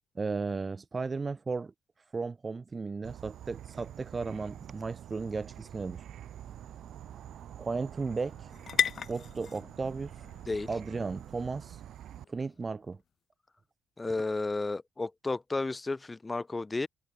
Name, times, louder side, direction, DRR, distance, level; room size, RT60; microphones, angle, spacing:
voice 1, 0.1-1.7 2.1-6.0 7.6-8.3 9.1-10.1 10.7-11.8 12.3-13.0, right 4 dB, 30° right, 1.5 m, -35 dB
Insect / Frog, 3.0-12.2, right 11 dB, 70° right, 2.8 m, -47 dB
sound 1, 5.2-13.0, left 7 dB, 55° left, 2.3 m, -39 dB
voice 2, 14.0-16.9, left 3 dB, 20° left, 0.6 m, -32 dB
cardioid pair, 90°, 0 cm